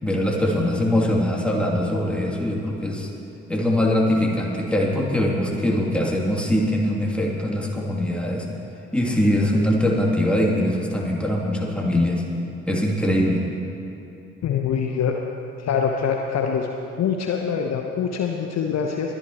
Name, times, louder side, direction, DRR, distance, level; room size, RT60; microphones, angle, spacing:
voice 1, 0.0-3.1 3.5-8.5 8.9-12.2 12.7-13.4, left 1 dB, 5° left, -3 dB, 2.6 m, -22 dB
voice 2, 14.4-15.2 15.6-16.7 17.0-19.1, left 7 dB, 45° left, 2 dB, 0.9 m, -24 dB
21.5 x 11.0 x 3.0 m, 2.9 s
figure-of-eight pair, 45°, 36 cm